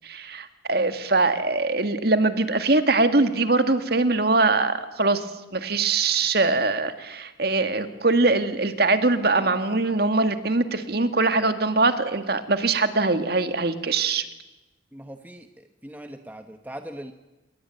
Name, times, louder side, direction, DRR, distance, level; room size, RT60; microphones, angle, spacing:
voice 1, 0.0-5.2 5.5-14.3, right 3 dB, 55° right, 9 dB, 1.9 m, -22 dB
voice 2, 14.9-17.1, right 1 dB, 10° right, 7 dB, 1.0 m, -40 dB
27.5 x 22.0 x 9.2 m, 1.1 s
head